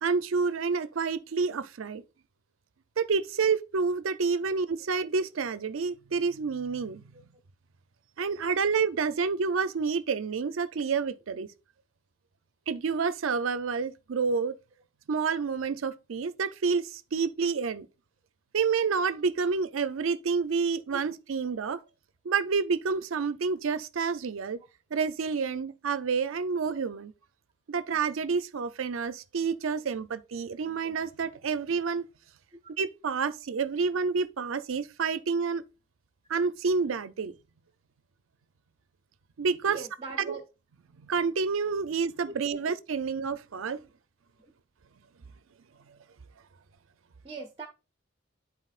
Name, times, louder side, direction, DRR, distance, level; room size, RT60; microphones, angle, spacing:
voice 1, 0.0-2.0 3.0-7.0 8.2-11.5 12.7-14.5 15.1-17.9 18.5-21.8 22.2-24.6 24.9-27.1 27.7-32.1 32.8-35.6 36.3-37.3 39.4-39.8 40.2-40.4 41.0-43.8, right 5 dB, 85° right, 0.5 m, -29 dB
voice 2, 39.7-40.4 42.5-42.6 47.2-47.7, right 4 dB, 25° right, 0.6 m, -40 dB
11.0 x 4.1 x 2.4 m
head